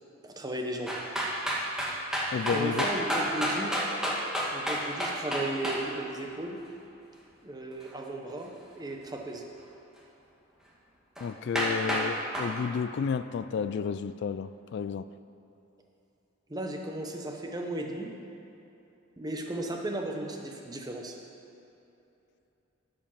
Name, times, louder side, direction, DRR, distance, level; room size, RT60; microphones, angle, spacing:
voice 1, 0.2-0.9 2.5-3.8 4.5-6.6 7.4-9.4 16.5-18.1 19.2-21.1, right 1 dB, 20° right, 2 dB, 0.9 m, -35 dB
sound 1, 0.9-5.8 11.2-11.3 11.6-12.1 12.3-12.5, equal, 5° right, 1.3 m, -29 dB
voice 2, 2.3-2.9 11.2-15.1, left 6 dB, 60° left, 13 dB, 0.3 m, -31 dB
12.0 x 5.2 x 5.7 m, 2.9 s
head